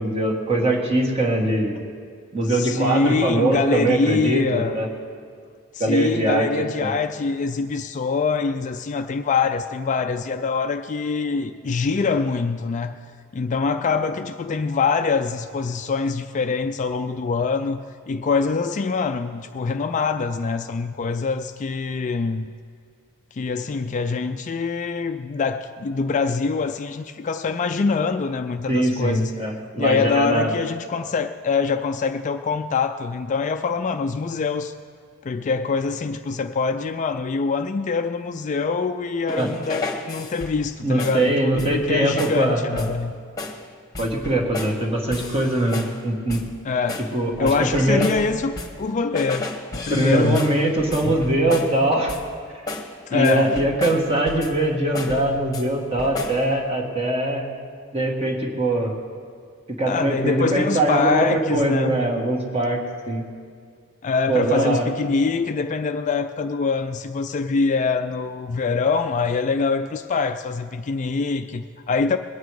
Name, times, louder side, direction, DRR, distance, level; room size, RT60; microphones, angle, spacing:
voice 1, 0.0-1.8 2.3-4.9 5.8-6.5 6.8-6.9 28.7-30.5 39.4-39.5 40.8-42.9 44.0-46.4 47.1-48.1 49.9-52.2 53.1-57.5 57.9-58.9 59.8-63.2 64.3-64.9, right 1 dB, 25° right, 1.7 m, -22 dB
voice 2, 2.5-4.8 5.7-13.0 13.3-22.5 23.3-29.3 29.8-34.7 35.2-43.1 46.6-47.1 47.4-50.5 53.1-53.6 59.9-62.0 64.0-72.2, left 4 dB, 35° left, 0.3 m, -24 dB
sound 1, 39.3-40.7 41.0-41.3 41.6-41.9 42.2-42.4 42.8-43.0 43.4-43.6 43.9-44.8 45.1-46.0 46.3-46.6 46.9-48.9 49.1-51.8 52.1-52.4 52.7-52.9 53.2-54.6 54.9-55.7 56.0-56.4, left 2 dB, 15° left, 1.3 m, -33 dB
21.5 x 9.1 x 4.8 m
head